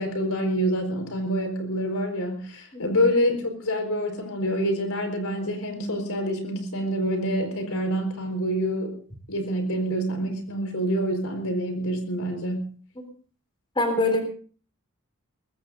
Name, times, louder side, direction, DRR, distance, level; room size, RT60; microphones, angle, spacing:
voice 1, 0.0-9.0 9.3-12.7, equal, 75° left, 5 dB, 4.5 m, -27 dB
voice 2, 13.8-14.2, left 2 dB, 20° left, 4 dB, 3.9 m, -23 dB
23.5 x 21.0 x 2.6 m, 0.43 s
head